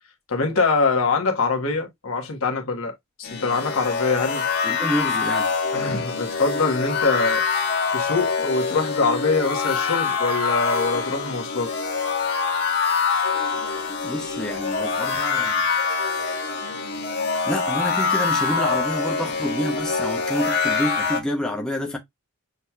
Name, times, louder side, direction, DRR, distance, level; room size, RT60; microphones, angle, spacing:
voice 1, 0.3-2.9 3.2-4.4 5.7-7.4 7.9-11.7, left 4 dB, 65° left, 1.2 m, -23 dB
sound 1, 3.2-21.2, left 5 dB, 50° left, 1.4 m, -25 dB
voice 2, 4.6-5.5 14.0-15.7 17.4-22.0, left 1 dB, 5° left, 0.8 m, -28 dB
6.4 x 2.8 x 2.3 m
head